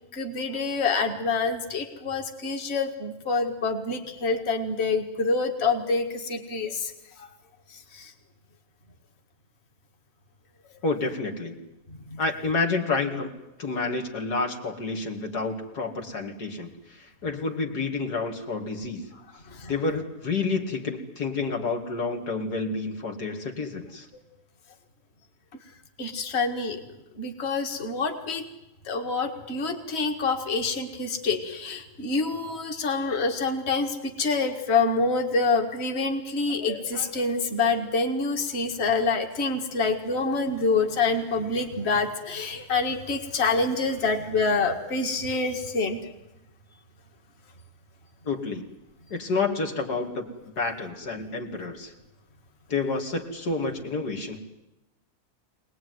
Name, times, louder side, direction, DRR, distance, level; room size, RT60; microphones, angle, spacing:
voice 1, 0.1-6.9 7.2-7.3 7.7-8.1 11.9-12.2 19.5-19.7 26.0-26.8 27.2-28.4 28.9-46.0, left 4 dB, 40° left, 4 dB, 2.1 m, -26 dB
voice 2, 10.8-11.6 12.2-13.3 13.6-19.1 19.7-24.1 48.2-48.6 49.1-50.2 50.6-51.9 52.7-54.4, left 3 dB, 85° left, 3 dB, 2.9 m, -29 dB
24.5 x 19.0 x 9.5 m, 0.95 s
omnidirectional pair, 1.7 m